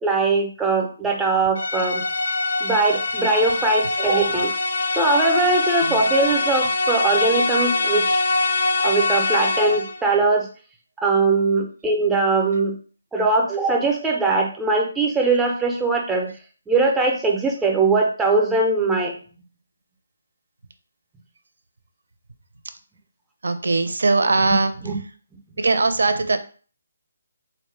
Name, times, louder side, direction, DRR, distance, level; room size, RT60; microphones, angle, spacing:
voice 1, 0.0-2.0 2.6-4.5 5.0-8.2 8.8-10.5 11.0-12.8 13.1-16.3 16.7-19.2 24.4-24.5 24.8-24.9, right 3 dB, 5° right, 0 dB, 0.4 m, -21 dB
sound 1, 1.6-10.0, left 3 dB, 70° left, 0.5 m, -23 dB
voice 2, 23.4-25.0 25.6-26.4, right 3 dB, 75° right, 10 dB, 0.5 m, -21 dB
4.1 x 2.1 x 3.2 m, 0.40 s
hypercardioid pair, 170°, 0 cm